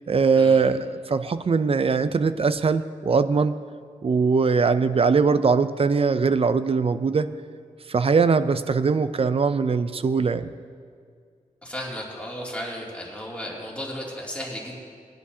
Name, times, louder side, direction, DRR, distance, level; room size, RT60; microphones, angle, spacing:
voice 1, 0.1-3.6 4.0-7.3 7.9-10.5, right 5 dB, 45° right, 12 dB, 0.4 m, -21 dB
voice 2, 11.6-14.8, equal, 10° left, -4 dB, 2.6 m, -34 dB
20.0 x 10.5 x 2.8 m, 2.1 s
wide cardioid pair, 100°, 14 cm